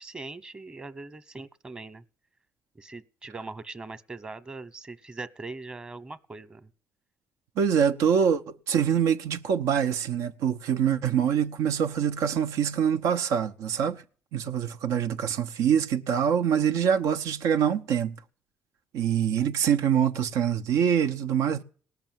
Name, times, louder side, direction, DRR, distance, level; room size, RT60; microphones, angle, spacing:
voice 1, 0.0-2.0 2.7-6.7, right 3 dB, 20° right, 1.1 m, -41 dB
voice 2, 7.6-14.0 14.3-18.2 18.9-21.6, right 8 dB, 85° right, 0.9 m, -25 dB
18.5 x 6.8 x 9.2 m
cardioid pair, 115°, 5 cm